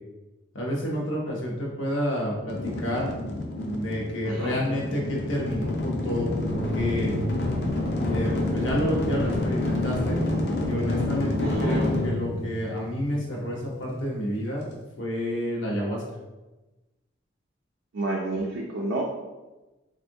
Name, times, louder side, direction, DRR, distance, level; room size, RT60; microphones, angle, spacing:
voice 1, 0.5-3.1 3.6-7.1 8.1-10.2 10.6-14.6 15.0-16.0, equal, 85° left, -3 dB, 0.9 m, -29 dB
sound 1, 2.5-13.5, left 1 dB, 55° left, 0.5 m, -28 dB
voice 2, 4.3-4.6 11.4-11.9 17.9-19.0, right 2 dB, 70° right, -2 dB, 0.4 m, -30 dB
3.5 x 2.5 x 2.7 m, 1.1 s
head